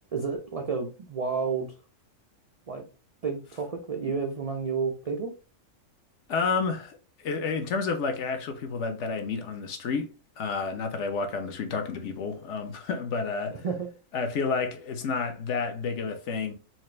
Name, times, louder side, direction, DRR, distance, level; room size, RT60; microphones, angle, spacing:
voice 1, 0.0-1.7 2.7-2.8 3.2-5.3 13.5-13.9, right 5 dB, 75° right, 0.3 m, -31 dB
voice 2, 6.3-13.6 14.1-16.5, left 4 dB, 65° left, 1.0 m, -30 dB
4.3 x 2.5 x 3.2 m
omnidirectional pair, 1.4 m